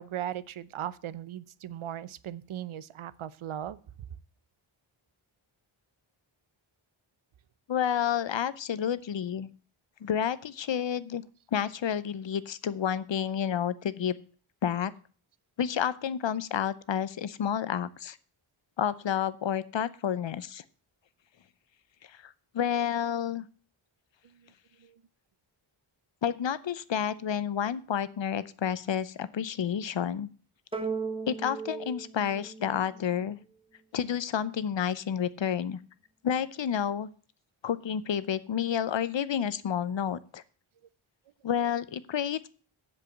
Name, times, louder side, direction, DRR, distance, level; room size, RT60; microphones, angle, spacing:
voice 1, 0.0-3.8 24.2-24.4 24.8-25.0, right 11 dB, 80° right, 18 dB, 0.7 m, -38 dB
voice 2, 7.7-9.5 10.0-11.2 11.5-14.2 14.6-14.9 15.6-18.2 18.8-20.6 22.1-23.5 26.2-30.3 31.3-33.4 33.9-35.8 36.2-37.1 37.6-40.4 41.4-42.5, left 8 dB, 65° left, 17 dB, 0.8 m, -30 dB
sound 1, 30.7-33.3, right 5 dB, 10° right, 1.0 m, -36 dB
7.6 x 7.5 x 7.8 m, 0.41 s
wide cardioid pair, 125°, 48 cm